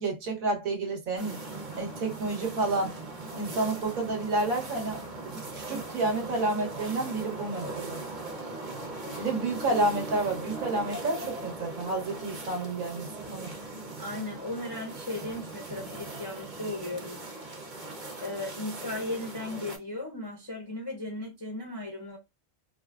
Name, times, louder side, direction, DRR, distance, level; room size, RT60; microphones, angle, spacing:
voice 1, 0.0-1.4 1.8-3.0 3.3-8.0 9.2-13.5, right 2 dB, 80° right, 1.5 m, -30 dB
sound 1, 1.2-19.8, right 2 dB, 40° right, 1.1 m, -39 dB
voice 2, 14.0-17.3 18.2-22.2, left 2 dB, 30° left, 0.4 m, -36 dB
4.7 x 2.2 x 2.4 m
omnidirectional pair, 1.4 m